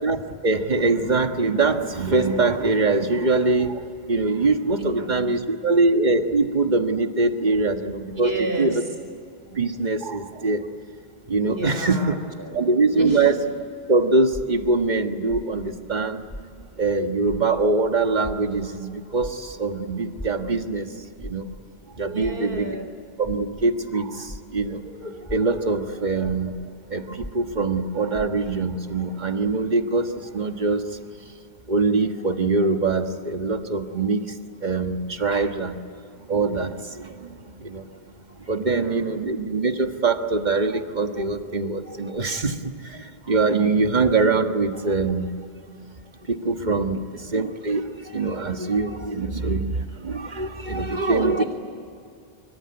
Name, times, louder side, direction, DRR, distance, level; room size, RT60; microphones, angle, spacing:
voice 1, 0.0-3.8 4.1-8.8 9.5-10.7 11.3-12.2 12.5-13.3 13.9-16.3 16.8-20.9 21.2-21.5 22.0-22.7 23.2-26.6 26.9-31.0 31.7-34.2 34.6-35.8 36.3-37.9 38.5-45.3 46.3-51.4, right 3 dB, 45° right, 6 dB, 1.6 m, -23 dB
voice 2, 8.1-8.8 11.4-13.3 22.0-22.9 37.6-37.7 38.7-39.2 50.7-51.4, right 1 dB, 75° right, 5 dB, 4.5 m, -32 dB
sound 1, 14.3-17.0 17.2-24.8 25.2-28.7, equal, 15° left, 2.3 m, -41 dB
25.0 x 24.5 x 9.6 m, 2.4 s
omnidirectional pair, 1.0 m